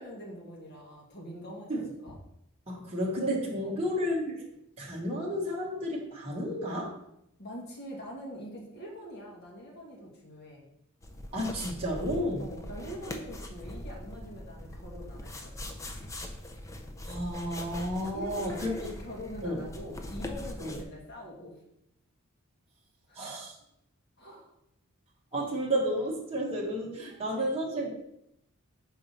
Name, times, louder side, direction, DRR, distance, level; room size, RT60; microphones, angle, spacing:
voice 1, 0.0-2.2 3.6-3.9 7.4-10.6 12.4-15.8 18.1-21.6 23.1-23.3 24.2-24.5 27.1-27.5, equal, 45° left, -2 dB, 1.5 m, -44 dB
voice 2, 2.7-4.4 4.8-7.0 11.3-12.4 17.0-18.9 19.4-19.6 20.6-20.7 23.2-23.5 25.3-27.9, equal, 25° right, -3 dB, 1.2 m, -32 dB
sound 1, 11.0-20.8, left 1 dB, 15° left, 0.4 m, -42 dB
4.8 x 4.0 x 5.7 m, 0.79 s
head